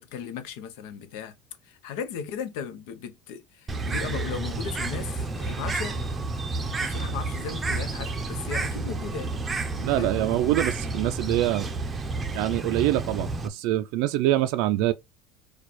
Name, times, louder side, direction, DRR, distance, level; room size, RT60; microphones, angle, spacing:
voice 1, 0.0-1.3 1.6-6.0 6.8-9.3 10.0-10.1, left 7 dB, 75° left, 0.9 m, -36 dB
Bird, 3.7-13.5, right 3 dB, 15° right, 0.6 m, -30 dB
voice 2, 9.8-11.7 12.3-14.9, right 14 dB, 65° right, 0.4 m, -25 dB
4.6 x 2.3 x 4.1 m
cardioid pair, 150°, 0 cm